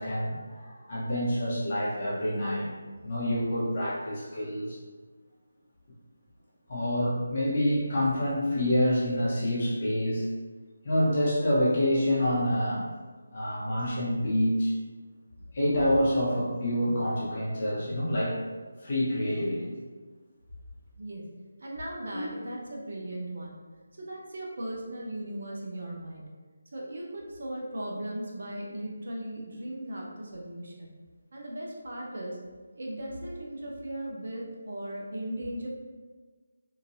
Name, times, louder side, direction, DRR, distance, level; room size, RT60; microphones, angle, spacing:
voice 1, 0.0-2.7 3.0-4.8 6.7-10.3 10.8-12.9 13.3-14.7 15.5-18.4 18.8-19.7 22.1-22.3, equal, 40° left, -7 dB, 1.0 m, -27 dB
voice 2, 21.6-23.6 23.9-26.3 26.7-30.9 31.3-32.4 32.8-35.7, right 1 dB, 65° right, -3 dB, 0.7 m, -37 dB
2.9 x 2.6 x 2.7 m, 1.4 s
figure-of-eight pair, 165°, 0 cm